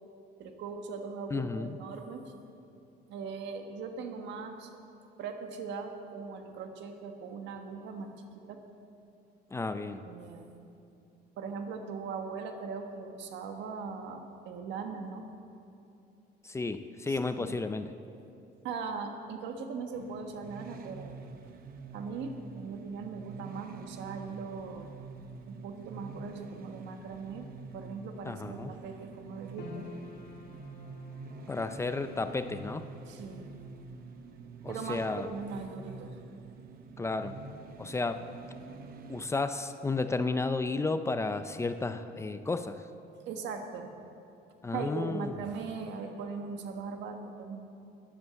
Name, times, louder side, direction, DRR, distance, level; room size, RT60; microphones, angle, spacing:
voice 1, 0.4-2.3 3.1-4.7 5.2-8.6 9.9-10.5 11.4-15.3 17.1-17.5 18.6-21.2 21.9-24.9 25.5-29.8 33.1-33.5 34.7-36.2 43.3-43.9 44.7-47.6, right 5 dB, 85° right, 5 dB, 1.4 m, -40 dB
voice 2, 1.3-1.8 9.5-10.0 16.4-17.9 28.2-28.7 31.5-32.8 34.6-35.3 37.0-37.3 37.8-38.3 39.1-42.8 44.6-45.3, left 3 dB, 15° left, 10 dB, 0.4 m, -32 dB
sound 1, 19.9-39.2, right 4 dB, 55° right, 0.8 m, -47 dB
sound 2, 29.6-42.0 42.2-43.2 43.6-43.7, left 3 dB, 90° left, 1.6 m, -55 dB
12.5 x 11.0 x 7.0 m, 2.7 s
cardioid pair, 145°, 18 cm